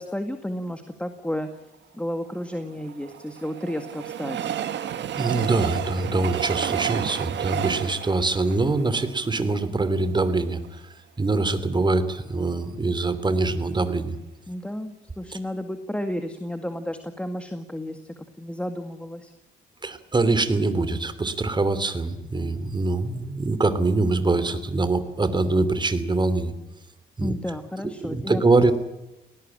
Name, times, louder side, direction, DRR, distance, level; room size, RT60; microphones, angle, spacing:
voice 1, 0.0-1.5 1.9-4.4 14.5-18.0 18.4-19.3 27.2-28.4, equal, 5° left, 7 dB, 1.9 m, -32 dB
Train, 2.6-9.8 10.3-10.4 10.6-10.7, right 10 dB, 65° right, 1.6 m, -31 dB
voice 2, 5.2-14.2 19.8-26.5 27.2-27.3 28.0-28.7, right 3 dB, 20° right, 12 dB, 3.0 m, -24 dB
19.0 x 18.5 x 10.0 m, 0.99 s
cardioid pair, 90°, 20 cm